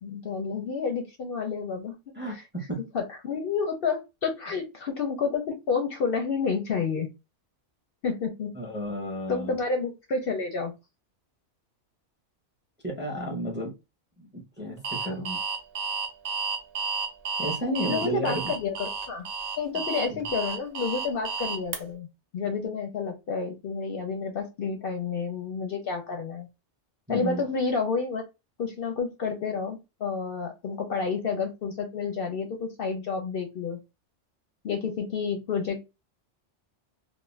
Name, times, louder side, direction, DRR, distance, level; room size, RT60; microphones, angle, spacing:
voice 1, 0.0-1.9 2.3-2.4 2.9-7.1 8.0-8.5 9.3-10.7 17.9-19.3 19.6-22.1 22.3-26.5 27.1-28.2 28.6-33.8 34.6-35.8, left 5 dB, 60° left, 0.7 m, -30 dB
voice 2, 2.2-2.8 8.5-9.5 12.8-13.7 14.2-15.4 17.4-18.5 19.9-20.2 27.1-27.4, right 1 dB, 10° right, 0.6 m, -32 dB
Alarm, 14.8-21.8, right 5 dB, 85° right, 1.0 m, -31 dB
2.4 x 2.1 x 3.1 m
omnidirectional pair, 1.3 m